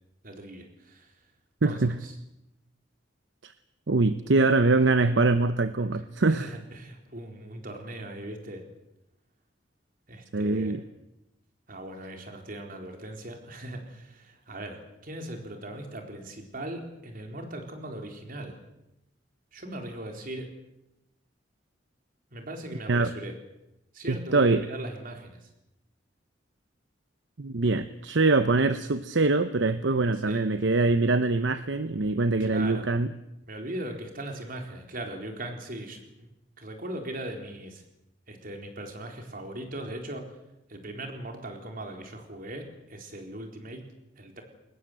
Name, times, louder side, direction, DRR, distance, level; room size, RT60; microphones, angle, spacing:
voice 1, 0.2-1.1 1.6-2.1 5.9-6.0 6.3-8.6 10.1-10.8 11.7-18.5 19.5-20.5 22.3-23.3 23.9-25.5 30.2-30.4 32.4-32.9 33.5-36.3 36.6-37.8 38.3-40.2 40.7-43.8 44.2-44.4, right 1 dB, 50° right, 3 dB, 4.1 m, -39 dB
voice 2, 1.6-1.9 3.4-3.5 3.9-6.5 10.3-10.8 22.9-23.1 24.1-24.6 27.4-33.1, right 3 dB, 70° right, 12 dB, 0.8 m, -23 dB
22.5 x 19.5 x 8.1 m, 0.89 s
head